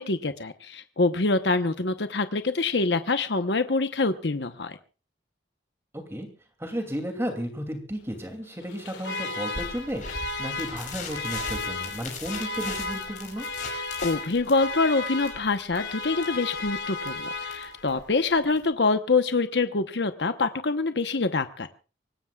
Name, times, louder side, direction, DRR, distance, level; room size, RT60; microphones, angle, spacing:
voice 1, 0.0-4.8 13.6-21.7, left 3 dB, 70° left, 9 dB, 1.0 m, -25 dB
voice 2, 5.9-6.3 6.6-13.5, equal, 15° right, 4 dB, 2.7 m, -33 dB
Alarm, 8.6-18.0, left 3 dB, 90° left, 3.2 m, -34 dB
sound 1, 9.5-18.7, left 4 dB, 45° left, 6.5 m, -40 dB
24.5 x 19.0 x 2.4 m, 0.35 s
head